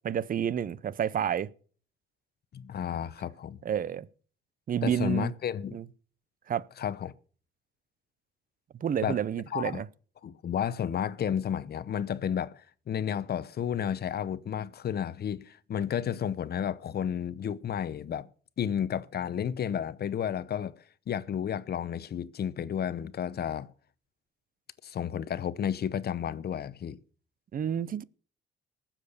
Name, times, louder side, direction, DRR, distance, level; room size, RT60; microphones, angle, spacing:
voice 1, 0.0-1.5 3.6-4.1 4.7-5.3 5.7-5.8 6.5-6.6 8.8-9.9 27.5-28.0, right 9 dB, 45° right, 0.7 m, -29 dB
voice 2, 2.5-3.6 4.8-5.8 6.8-7.1 9.0-9.2 9.5-9.8 10.2-18.3 18.6-20.8 21.1-23.7 24.8-27.0, left 9 dB, 55° left, 0.8 m, -32 dB
19.0 x 7.4 x 6.7 m
cardioid pair, 90°, 20 cm